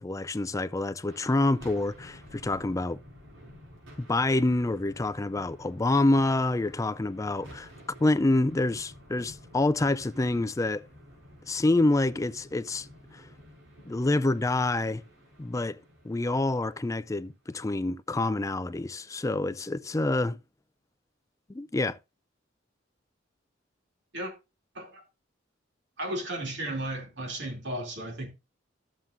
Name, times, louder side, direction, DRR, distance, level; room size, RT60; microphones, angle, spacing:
voice 1, 0.0-3.0 4.0-7.7 8.0-10.8 11.5-12.9 13.1-13.3 13.8-15.0 15.4-20.4 21.5-22.0, left 2 dB, 15° left, 0.4 m, -27 dB
sound 1, 1.1-17.4, equal, 90° right, 5.7 m, -51 dB
voice 2, 26.0-28.3, right 1 dB, 60° right, 2.9 m, -34 dB
13.5 x 7.5 x 2.6 m
head